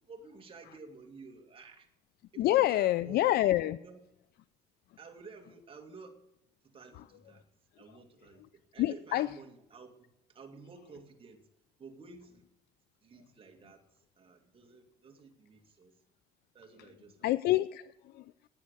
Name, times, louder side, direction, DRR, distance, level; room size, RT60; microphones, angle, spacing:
voice 1, 0.0-1.9 2.3-3.3 3.8-4.0 5.0-6.2 6.6-7.5 7.8-11.5 11.8-12.5 13.0-13.8 14.2-15.9 16.5-17.3, right 4 dB, 30° right, 3 dB, 2.3 m, -52 dB
voice 2, 2.4-3.8 6.9-7.0 8.8-9.3 17.2-18.5, left 15 dB, 70° left, 17 dB, 0.5 m, -28 dB
15.5 x 9.9 x 8.3 m, 0.92 s
cardioid pair, 110°, 17 cm